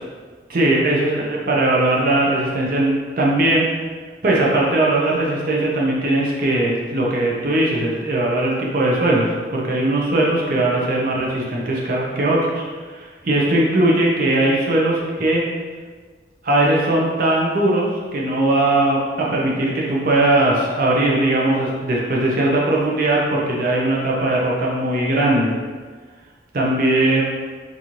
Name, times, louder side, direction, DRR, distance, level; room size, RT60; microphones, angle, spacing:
voice 1, 0.5-3.7 4.2-12.6 12.9-15.4 16.4-25.5 26.5-27.2, right 1 dB, 50° right, -3 dB, 0.6 m, -19 dB
4.0 x 2.5 x 3.0 m, 1.5 s
head